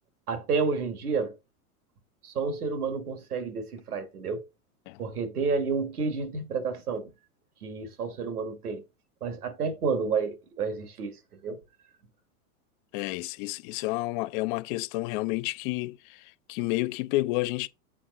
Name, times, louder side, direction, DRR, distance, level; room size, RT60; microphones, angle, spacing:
voice 1, 0.3-1.4 2.2-4.5 5.0-7.1 7.6-8.8 9.2-11.6, right 5 dB, 85° right, 1.5 m, -30 dB
voice 2, 12.9-17.7, left 20 dB, 40° left, 0.4 m, -30 dB
7.5 x 3.7 x 4.0 m
hypercardioid pair, 105°, 44 cm